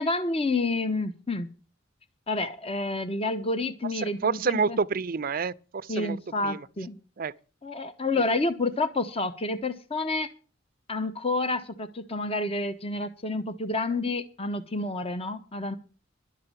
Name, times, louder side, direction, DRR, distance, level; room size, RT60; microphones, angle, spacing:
voice 1, 0.0-1.5 2.3-4.8 5.9-7.0 7.6-10.3 10.9-15.8, left 2 dB, 30° left, 0.9 m, -29 dB
voice 2, 3.8-6.2 6.4-6.7 7.2-7.3 8.1-8.2, right 5 dB, 45° right, 0.5 m, -29 dB
11.5 x 6.7 x 8.9 m
head